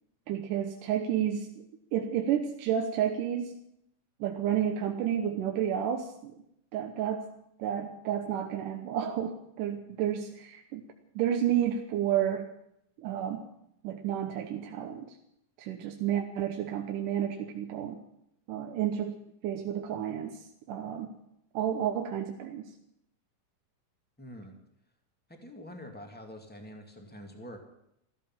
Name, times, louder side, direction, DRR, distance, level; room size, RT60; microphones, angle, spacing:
voice 1, 0.3-1.6 1.9-3.5 4.2-6.4 6.7-7.3 7.6-10.9 11.2-12.5 13.0-13.5 13.8-15.1 15.6-18.0 18.5-21.2 21.5-22.7, right 9 dB, 75° right, 3 dB, 2.5 m, -31 dB
voice 2, 24.2-24.5 25.3-27.6, equal, 5° left, 3 dB, 1.5 m, -46 dB
14.0 x 13.5 x 7.4 m, 0.77 s
omnidirectional pair, 3.8 m